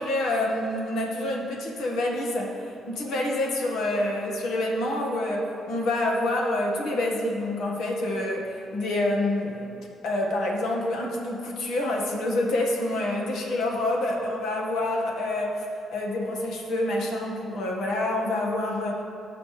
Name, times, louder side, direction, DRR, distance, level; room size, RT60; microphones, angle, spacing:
voice 1, 0.0-19.0, left 1 dB, 80° left, -1 dB, 1.6 m, -27 dB
18.5 x 6.8 x 3.3 m, 2.5 s
cardioid pair, 90°, 0 cm